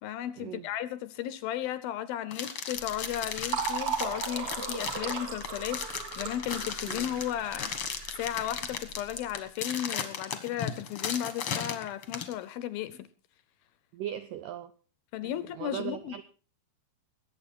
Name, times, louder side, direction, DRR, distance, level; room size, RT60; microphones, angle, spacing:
voice 1, 0.0-13.1 15.1-16.2, left 11 dB, 75° left, 2.3 m, -35 dB
sound 1, 2.3-12.3, left 7 dB, 55° left, 1.6 m, -36 dB
Fill (with liquid), 2.8-9.2, right 6 dB, 45° right, 3.7 m, -37 dB
voice 2, 13.9-14.7 15.2-16.2, right 11 dB, 85° right, 1.9 m, -39 dB
21.5 x 8.7 x 4.3 m
omnidirectional pair, 4.7 m